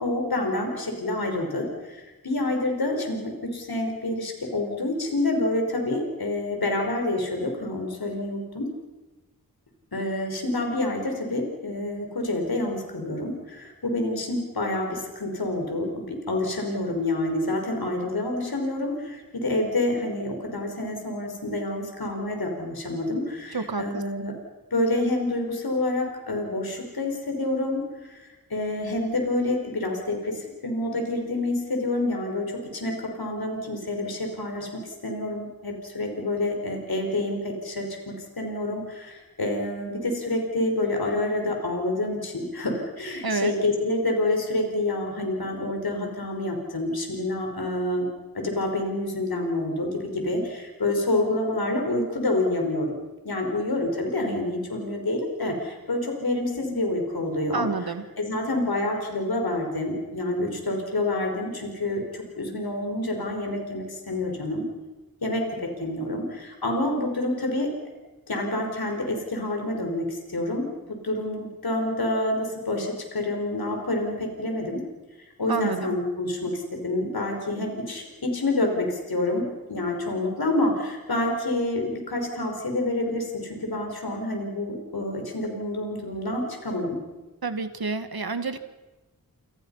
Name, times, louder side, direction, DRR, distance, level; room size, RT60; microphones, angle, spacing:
voice 1, 0.0-8.7 9.9-24.3 24.7-28.2 28.5-48.1 48.3-53.0 53.2-64.7 65.2-67.7 68.3-74.8 75.4-87.0, left 2 dB, 85° left, 3 dB, 5.4 m, -28 dB
voice 2, 23.5-24.0 43.2-43.5 57.5-58.0 75.5-75.9 87.4-88.6, right 4 dB, 85° right, 9 dB, 2.0 m, -28 dB
29.0 x 27.0 x 5.8 m, 1.1 s
wide cardioid pair, 60°, 36 cm